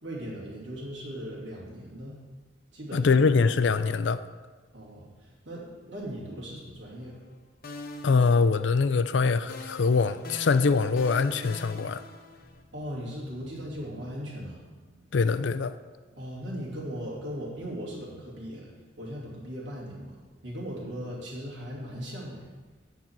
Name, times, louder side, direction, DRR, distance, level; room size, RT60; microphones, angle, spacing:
voice 1, 0.0-2.2 2.7-3.2 4.7-7.2 12.7-15.2 16.1-18.7 19.0-20.2 20.4-22.5, equal, 75° right, -6 dB, 2.8 m, -38 dB
voice 2, 2.9-4.2 8.0-12.0 15.1-15.8, left 4 dB, 75° left, 13 dB, 0.5 m, -23 dB
sound 1, 7.0-7.4 7.6-9.1 9.5-12.6, left 2 dB, 55° left, 0.8 m, -43 dB
10.5 x 4.0 x 7.4 m, 1.4 s
head